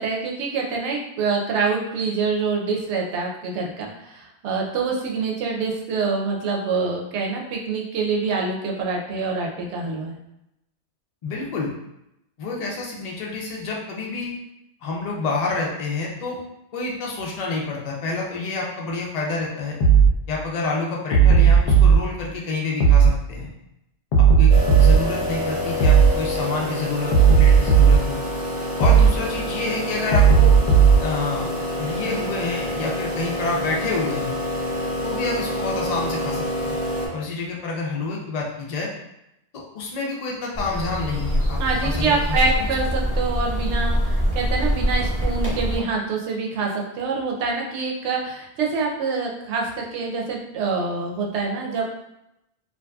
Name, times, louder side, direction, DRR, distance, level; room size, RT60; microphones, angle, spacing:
voice 1, 0.0-10.2 41.6-51.8, right 4 dB, 75° right, -1 dB, 0.8 m, -26 dB
voice 2, 11.2-11.7 12.4-14.3 14.8-16.4 16.7-19.8 20.3-23.5 24.2-24.5 24.8-28.2 28.8-30.6 31.0-31.5 31.8-34.4 35.0-36.8 37.1-38.9 39.5-42.7, left 3 dB, 60° left, -2 dB, 0.4 m, -28 dB
sound 1, 19.8-20.1 21.1-22.0 22.8-23.1 24.1-25.0 25.8-26.1 27.1-28.0 28.8-29.1 30.1-31.0, right 6 dB, 80° left, 0.9 m, -13 dB
sound 2, 24.5-37.1, left 1 dB, 45° right, 0.8 m, -27 dB
sound 3, 40.5-45.8, equal, 15° right, 0.7 m, -24 dB
2.7 x 2.5 x 2.2 m, 0.85 s
omnidirectional pair, 1.2 m